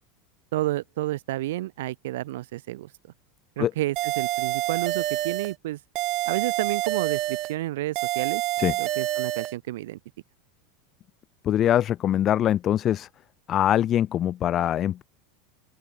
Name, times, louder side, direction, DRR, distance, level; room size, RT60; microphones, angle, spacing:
voice 1, 0.5-2.9 3.6-5.8 6.3-8.4 8.8-10.0, right 16 dB, 75° right, 0.8 m, -30 dB
sound 1, 4.0-5.5 6.0-7.5 8.0-9.5, right 18 dB, 35° right, 1.3 m, -27 dB
voice 2, 11.4-13.1 13.5-15.0, left 11 dB, 25° left, 0.5 m, -23 dB
open air
supercardioid pair, 165°, 0 cm